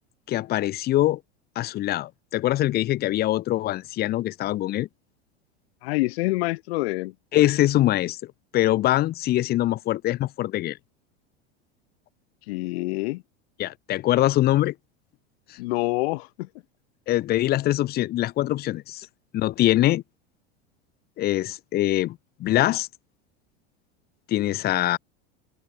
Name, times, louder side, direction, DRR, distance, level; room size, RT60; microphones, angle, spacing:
voice 1, 0.3-1.2 1.6-4.9 7.3-8.2 8.5-10.8 13.6-14.7 15.5-15.6 17.1-19.1 19.3-20.0 21.2-22.9 24.3-25.0, left 15 dB, 30° left, 0.5 m, -23 dB
voice 2, 5.8-7.1 12.5-13.2 15.6-16.5, left 22 dB, 70° left, 0.7 m, -26 dB
hypercardioid pair, 100°, 32 cm